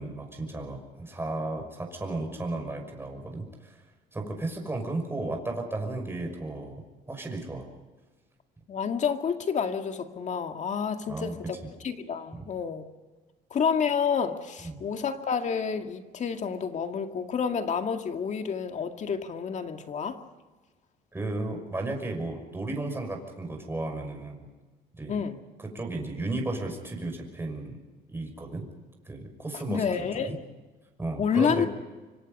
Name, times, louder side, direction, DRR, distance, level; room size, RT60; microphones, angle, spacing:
voice 1, 0.0-3.8 4.1-7.7 11.1-11.7 12.3-12.4 14.6-14.8 21.1-24.5 25.0-25.2 25.7-27.8 28.1-28.7 29.1-30.4 31.0-31.7, right 2 dB, 15° right, 2 dB, 5.9 m, -34 dB
voice 2, 8.7-11.6 11.8-12.8 13.5-20.2 25.1-25.4 29.5-30.4 31.2-31.7, left 6 dB, 45° left, 6 dB, 2.1 m, -29 dB
26.0 x 25.5 x 5.5 m, 1.3 s
cardioid pair, 110°, 17 cm